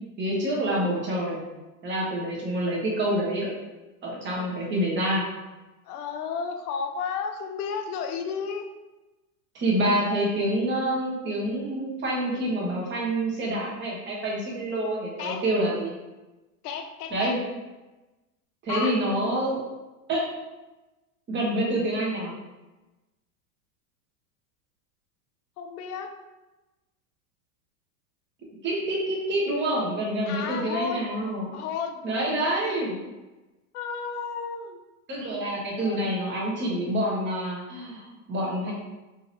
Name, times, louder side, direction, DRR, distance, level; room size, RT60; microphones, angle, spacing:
voice 1, 0.2-1.4 1.8-3.5 4.0-5.2 9.5-15.9 17.1-17.4 18.6-19.6 20.1-20.3 21.3-22.3 28.6-31.5 32.0-33.0 35.1-38.7, right 1 dB, 25° right, -3 dB, 1.1 m, -27 dB
voice 2, 4.3-4.6 5.8-8.7 15.2-15.4 16.6-17.4 18.7-19.0 25.6-26.1 30.2-31.1 31.5-32.0 33.7-34.8 35.8-36.6, left 6 dB, 75° left, 5 dB, 0.7 m, -33 dB
3.9 x 2.8 x 2.6 m, 1.1 s
supercardioid pair, 125°, 46 cm